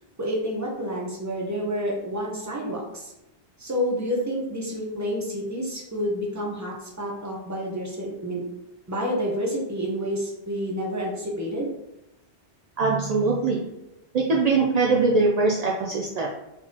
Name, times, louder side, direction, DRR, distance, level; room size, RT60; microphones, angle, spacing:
voice 1, 0.2-3.1 3.6-8.4 8.9-11.7, equal, 15° right, -3 dB, 0.8 m, -29 dB
voice 2, 12.8-13.6 14.1-16.3, right 3 dB, 55° right, -1 dB, 0.4 m, -22 dB
4.1 x 4.0 x 2.9 m, 0.91 s
omnidirectional pair, 1.2 m